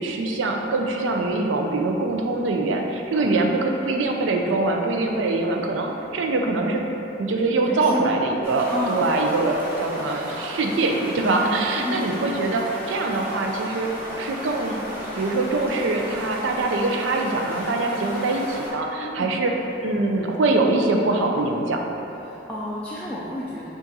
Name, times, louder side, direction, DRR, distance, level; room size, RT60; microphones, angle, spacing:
voice 1, 0.0-3.6 3.8-6.8 7.2-13.9 14.2-14.8 15.2-19.5 19.8-21.8, right 2 dB, 80° right, 2 dB, 0.5 m, -23 dB
voice 2, 3.1-3.4 7.7-8.2 8.7-9.1 11.7-12.1 18.9-19.4 22.2-23.7, left 1 dB, 5° left, -8 dB, 0.3 m, -30 dB
sound 1, 8.4-18.7, equal, 10° right, 0.8 m, -34 dB
5.3 x 2.5 x 4.0 m, 3.0 s
head